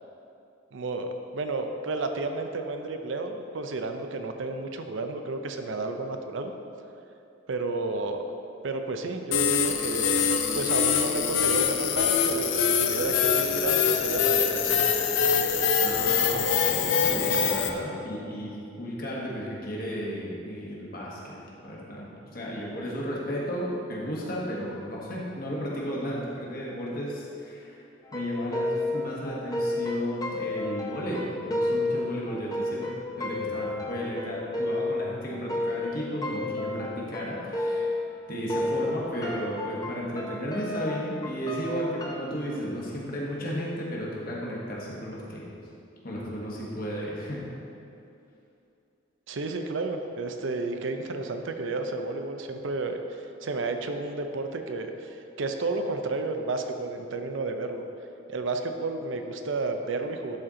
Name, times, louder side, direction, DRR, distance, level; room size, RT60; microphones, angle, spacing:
voice 1, 0.7-6.5 7.5-8.2 8.6-14.8 49.3-57.8 58.3-60.4, right 3 dB, 70° right, 6 dB, 0.5 m, -32 dB
sound 1, 9.3-17.7, left 6 dB, 70° left, 0.5 m, -24 dB
voice 2, 15.8-27.8 28.1-38.0 38.3-45.5 46.0-47.5, equal, 45° left, -4 dB, 1.4 m, -34 dB
sound 2, 28.0-38.2 38.5-42.3, left 2 dB, 20° left, 0.6 m, -31 dB
11.5 x 4.4 x 3.7 m, 2.7 s
head